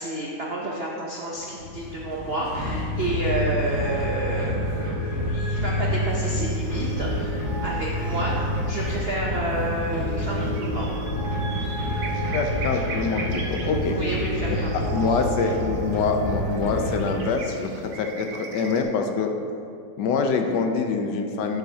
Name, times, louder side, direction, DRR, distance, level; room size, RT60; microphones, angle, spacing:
voice 1, 0.0-8.4 8.6-10.9 13.8-15.0 15.4-15.5, right 1 dB, 80° right, -3 dB, 0.5 m, -30 dB
sound 1, 1.6-12.3, left 1 dB, 40° left, 2.3 m, -40 dB
sound 2, 2.5-17.6, equal, 25° right, 1.9 m, -28 dB
sound 3, 6.2-18.8, right 3 dB, 55° right, 1.1 m, -42 dB
voice 2, 12.3-14.0 14.5-19.3 20.0-21.6, left 4 dB, 70° left, 5 dB, 1.1 m, -25 dB
11.5 x 6.4 x 2.8 m, 2.4 s
omnidirectional pair, 2.2 m